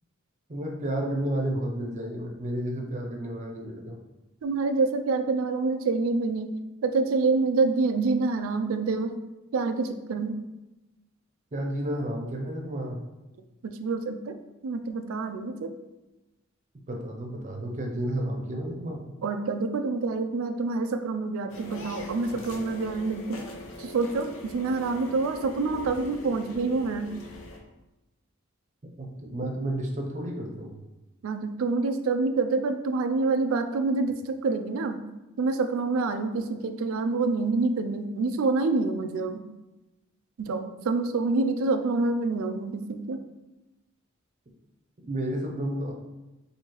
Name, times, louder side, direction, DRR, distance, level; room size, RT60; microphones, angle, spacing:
voice 1, 0.5-4.0 11.5-13.0 16.9-19.1 29.0-30.8 45.1-45.9, right 1 dB, 35° right, 0 dB, 0.6 m, -31 dB
voice 2, 4.4-6.6 6.8-9.2 9.5-10.4 13.6-14.4 14.6-15.7 19.2-23.4 23.8-27.1 31.2-35.0 35.4-39.4 40.4-43.2, right 3 dB, 85° right, 8 dB, 0.4 m, -27 dB
sound 1, 21.5-27.6, left 1 dB, 85° left, 0.6 m, -42 dB
4.4 x 2.7 x 3.0 m, 1.0 s
head